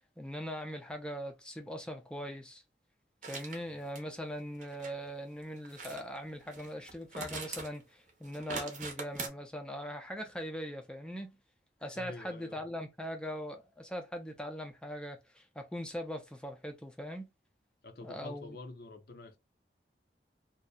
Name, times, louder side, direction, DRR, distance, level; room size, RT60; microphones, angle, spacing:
voice 1, 0.2-2.6 3.3-11.4 11.8-17.3 18.0-18.6, equal, 5° left, 0.4 m, -41 dB
sound 1, 3.2-3.6 3.9-4.0 4.6-4.9 5.6-6.0 6.4-7.8 8.1-9.3, right 4 dB, 45° right, 0.7 m, -42 dB
voice 2, 11.9-12.6 17.8-19.4, left 2 dB, 55° left, 0.5 m, -47 dB
2.7 x 2.1 x 2.2 m
head